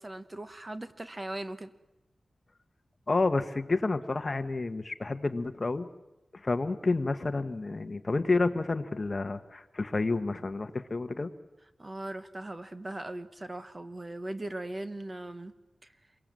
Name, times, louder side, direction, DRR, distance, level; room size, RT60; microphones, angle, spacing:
voice 1, 0.0-1.7 11.8-15.5 15.8-15.9, right 1 dB, 25° right, 10 dB, 1.1 m, -39 dB
voice 2, 3.1-5.9 6.4-11.3, left 3 dB, 35° left, 9 dB, 1.2 m, -29 dB
27.0 x 22.5 x 7.6 m, 0.96 s
wide cardioid pair, 125°, 0 cm